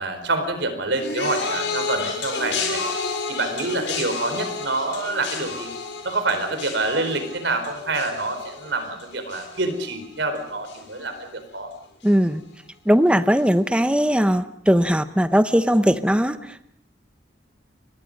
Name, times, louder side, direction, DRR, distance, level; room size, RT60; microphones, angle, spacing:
voice 1, 0.0-2.8 3.3-5.7 6.0-11.7, right 2 dB, 70° right, 7 dB, 4.4 m, -27 dB
sound 1, 1.0-10.4 10.6-11.2 12.0-12.1, left 4 dB, 80° left, 6.2 m, -31 dB
voice 2, 12.0-12.4 12.9-16.7, equal, 5° right, 11 dB, 0.8 m, -19 dB
29.5 x 23.0 x 5.4 m, 0.67 s
head